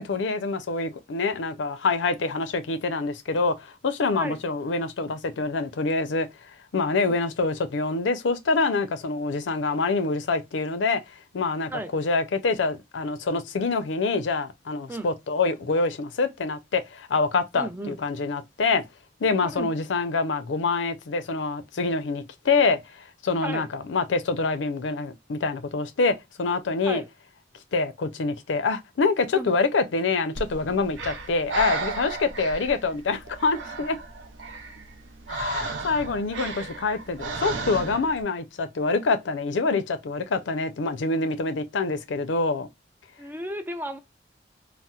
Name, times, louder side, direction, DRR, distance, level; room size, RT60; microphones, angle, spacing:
voice 1, 0.0-6.3 6.7-11.0 11.3-18.8 19.2-22.8 23.2-27.0 27.7-34.0 35.3-42.7, left 3 dB, 80° left, 0.5 m, -26 dB
voice 2, 17.5-18.0 19.4-19.7 23.4-23.7 26.8-27.1 29.3-29.6 43.2-44.0, right 1 dB, 10° right, 0.3 m, -34 dB
Breathing, 30.3-38.2, right 4 dB, 85° right, 0.6 m, -34 dB
4.1 x 2.0 x 2.3 m
head